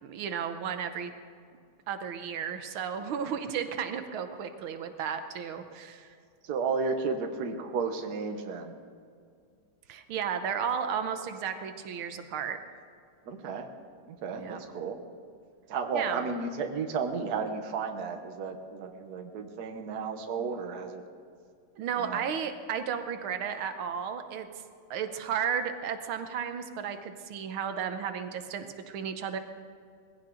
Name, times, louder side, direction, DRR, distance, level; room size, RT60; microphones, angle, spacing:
voice 1, 0.0-1.1 1.9-6.1 9.9-12.6 14.3-14.6 15.9-16.3 21.8-24.5 24.9-29.4, right 7 dB, 90° right, 8 dB, 1.8 m, -33 dB
voice 2, 6.4-8.7 13.2-13.7 14.0-15.0 15.7-21.0 21.9-22.3, right 5 dB, 55° right, 5 dB, 1.5 m, -33 dB
20.5 x 16.0 x 3.9 m, 2.2 s
omnidirectional pair, 2.2 m